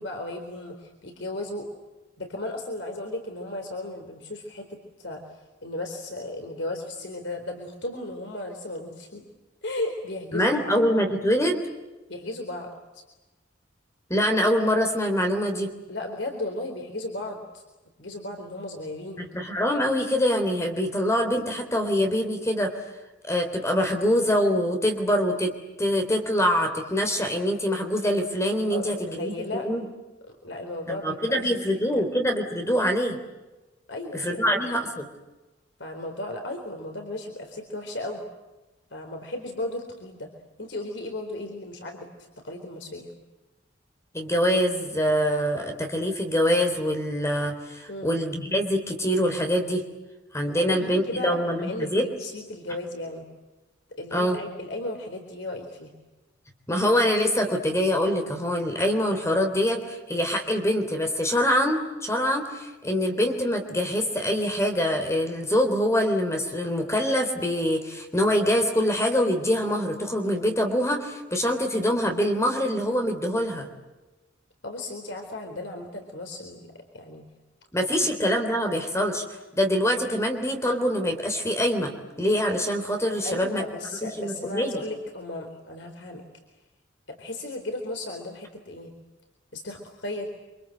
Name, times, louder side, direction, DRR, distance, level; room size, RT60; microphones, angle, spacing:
voice 1, 0.0-1.7 2.2-9.2 9.6-10.7 12.1-13.0 15.9-17.6 18.0-19.2 28.7-29.7 30.4-31.5 32.0-32.1 33.9-34.6 35.8-38.3 38.9-40.3 40.6-43.1 47.9-48.1 50.5-53.2 54.0-55.9 74.6-77.2 77.9-78.0 83.2-86.2 87.1-88.9 89.5-90.3, left 2 dB, 65° left, 3 dB, 4.1 m, -35 dB
voice 2, 10.3-11.6 14.1-15.7 19.2-22.7 23.2-25.5 25.8-29.8 30.9-33.2 34.1-35.1 44.1-49.8 50.3-52.1 54.1-54.4 56.7-73.7 77.7-79.2 79.6-81.9 82.2-83.6 84.2-84.8, equal, 15° left, 4 dB, 3.4 m, -24 dB
28.0 x 26.0 x 7.9 m, 1.1 s
head